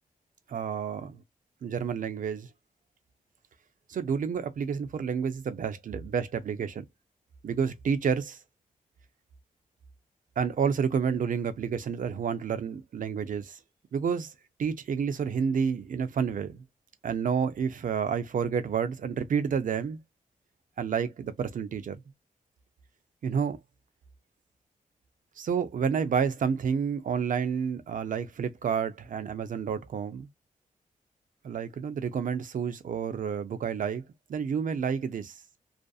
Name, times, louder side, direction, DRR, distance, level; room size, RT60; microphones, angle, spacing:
voice 1, 0.5-1.2 1.6-2.5 3.9-6.8 7.4-8.4 10.4-13.6 13.9-14.3 14.6-16.6 17.0-20.0 20.8-22.0 23.2-23.6 25.4-30.3 31.4-34.0 34.3-35.3, right 6 dB, 65° right, 0.5 m, -29 dB
2.5 x 2.5 x 2.3 m
cardioid pair, 85°, 14 cm